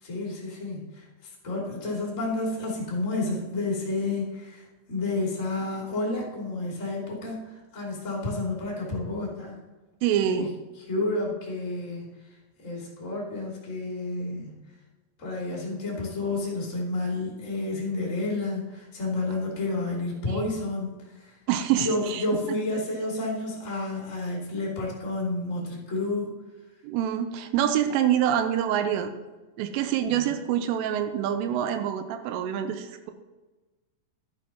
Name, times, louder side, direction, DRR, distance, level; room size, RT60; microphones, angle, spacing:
voice 1, 0.0-9.6 10.4-10.5 10.9-12.1 12.6-14.6 15.2-21.4 21.8-26.3 30.1-30.2, left 2 dB, 30° left, -3 dB, 1.5 m, -30 dB
voice 2, 10.0-10.5 20.3-20.5 21.5-22.3 26.8-29.2 29.6-33.1, right 9 dB, 85° right, 7 dB, 3.3 m, -26 dB
11.5 x 11.0 x 3.0 m, 1.2 s
omnidirectional pair, 5.7 m